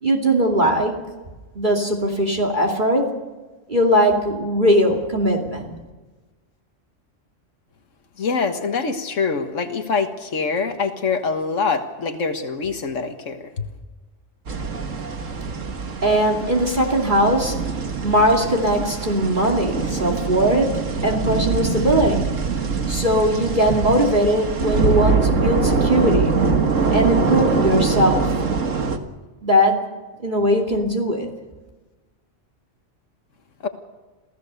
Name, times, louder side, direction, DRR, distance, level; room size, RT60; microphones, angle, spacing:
voice 1, 0.0-0.9 1.5-3.1 3.7-5.8 16.0-17.5 18.0-22.3 22.9-26.3 26.9-28.3 29.4-29.8 30.2-31.3, equal, 40° right, 2 dB, 2.7 m, -20 dB
voice 2, 8.2-13.6 33.6-33.7, left 5 dB, 85° left, 6 dB, 1.9 m, -24 dB
sound 1, 14.5-29.0, right 4 dB, 85° right, 2.0 m, -23 dB
28.0 x 16.5 x 6.8 m, 1.2 s
omnidirectional pair, 1.3 m